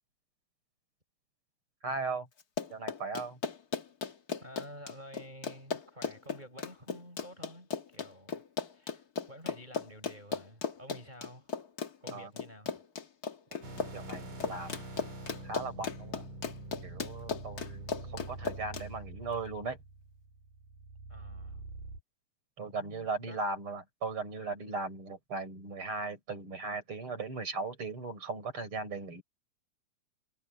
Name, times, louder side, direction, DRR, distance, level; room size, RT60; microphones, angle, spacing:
voice 1, 1.8-2.3 2.7-3.4 12.1-12.3 13.6-14.8 15.4-16.2 16.8-19.8 22.6-29.2, right 3 dB, 40° right, 6.7 m, -38 dB
Run, 2.4-18.9, left 6 dB, 45° left, 1.3 m, -37 dB
voice 2, 4.4-8.4 8.7-11.5 12.0-12.7 21.1-21.6 22.6-23.4, equal, 15° right, 6.5 m, -50 dB
sound 1, 13.6-22.0, right 2 dB, 75° right, 8.0 m, -45 dB
omnidirectional pair, 3.7 m